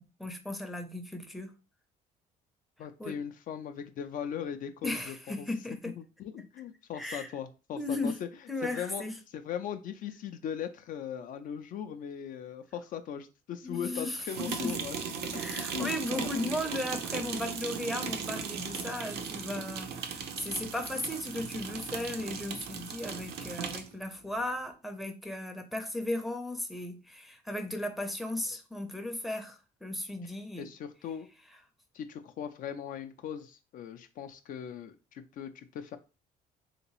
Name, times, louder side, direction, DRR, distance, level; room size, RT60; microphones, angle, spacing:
voice 1, 0.0-1.5 3.0-3.2 4.8-5.9 6.9-7.3 7.8-8.1 8.5-9.2 13.6-14.7 15.3-30.7, left 1 dB, ahead, 0.5 m, -36 dB
voice 2, 2.8-5.5 6.0-8.3 8.6-9.0 9.3-15.4 15.7-16.3 30.2-30.3 30.6-31.3 31.9-36.0, left 8 dB, 55° left, 0.4 m, -39 dB
sound 1, 14.3-23.9, right 6 dB, 75° right, 0.6 m, -37 dB
2.9 x 2.8 x 3.0 m
cardioid pair, 110°, 17 cm